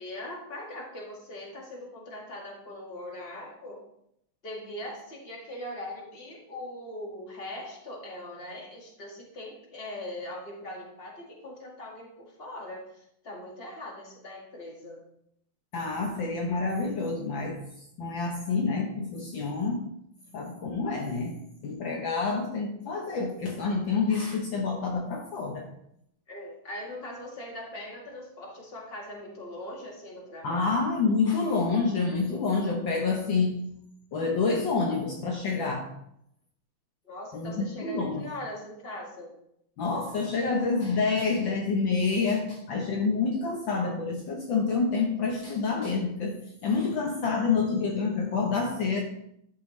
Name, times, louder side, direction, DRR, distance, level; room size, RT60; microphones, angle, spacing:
voice 1, 0.0-3.8 4.4-15.0 26.3-30.8 37.0-39.4, left 1 dB, 30° left, -2 dB, 2.0 m, -41 dB
voice 2, 15.7-17.6 18.0-19.9 20.3-25.7 30.4-33.6 34.1-35.9 37.3-38.2 39.8-49.0, left 4 dB, 65° left, 1 dB, 1.7 m, -28 dB
11.5 x 6.3 x 3.2 m, 0.75 s
omnidirectional pair, 2.4 m